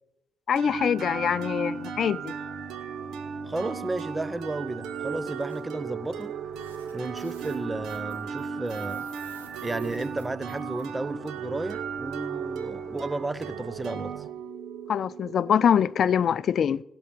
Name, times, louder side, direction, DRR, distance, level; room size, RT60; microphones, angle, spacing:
voice 1, 0.5-2.3 14.9-16.8, left 8 dB, 60° left, 0.4 m, -24 dB
sound 1, 0.6-16.2, right 6 dB, 65° right, 0.9 m, -36 dB
voice 2, 3.4-6.3 6.9-9.1 9.6-14.1, right 2 dB, 20° right, 0.7 m, -33 dB
sound 2, 4.8-5.6 6.2-6.3 6.5-10.8, right 6 dB, 90° right, 1.0 m, -52 dB
16.5 x 6.1 x 6.6 m
hypercardioid pair, 40°, 0 cm